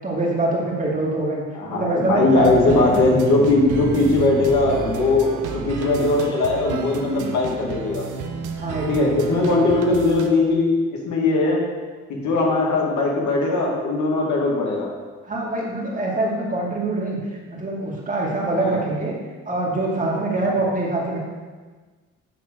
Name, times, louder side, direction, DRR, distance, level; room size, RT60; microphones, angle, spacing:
voice 1, 0.0-1.4 1.7-3.2 8.6-9.3 15.3-17.2 17.5-19.2 19.5-21.2, right 2 dB, 25° right, -3 dB, 2.2 m, -24 dB
voice 2, 1.5-8.0 8.9-10.8 11.0-11.6 12.1-14.9 18.5-18.8 20.4-20.7, left 2 dB, 75° left, -2 dB, 2.1 m, -20 dB
sound 1, 2.3-10.3, right 6 dB, 85° right, 0.8 m, -32 dB
8.8 x 3.7 x 6.2 m, 1.4 s
cardioid pair, 90°, 30 cm